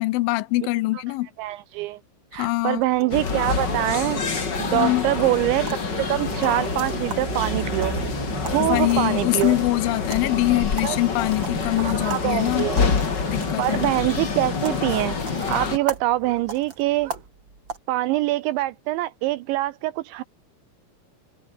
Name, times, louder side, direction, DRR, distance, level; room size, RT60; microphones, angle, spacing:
voice 1, 0.0-1.3 2.3-2.8 4.7-5.1 8.6-13.0 13.3-13.9, left 19 dB, 80° left, 3.1 m, -23 dB
voice 2, 1.4-2.0 2.3-8.0 8.4-9.6 10.8-11.0 11.8-12.8 13.6-15.2 15.5-17.1 17.9-20.2, right 17 dB, 80° right, 2.7 m, -24 dB
sound 1, 2.3-17.8, right 4 dB, 25° right, 3.6 m, -41 dB
sound 2, 2.7-17.2, right 10 dB, 60° right, 3.8 m, -39 dB
sound 3, 3.1-15.8, left 5 dB, 30° left, 2.1 m, -27 dB
omnidirectional pair, 5.8 m